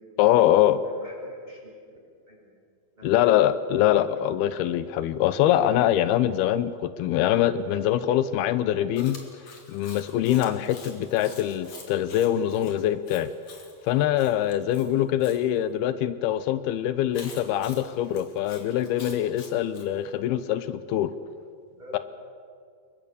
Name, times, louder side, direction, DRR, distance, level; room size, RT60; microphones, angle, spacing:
voice 1, 0.2-0.8 3.0-9.2 9.7-13.3 13.8-21.1 21.9-22.0, left 12 dB, 85° left, 13 dB, 2.8 m, -23 dB
voice 2, 0.8-1.8 2.3-2.5 2.9-3.3 3.7-4.0 21.7-22.0, equal, 10° right, -1 dB, 5.7 m, -47 dB
Chewing mastication, 9.0-15.4 17.1-19.9, left 4 dB, 45° left, 3.9 m, -47 dB
28.5 x 23.0 x 7.0 m, 2.2 s
omnidirectional pair, 4.4 m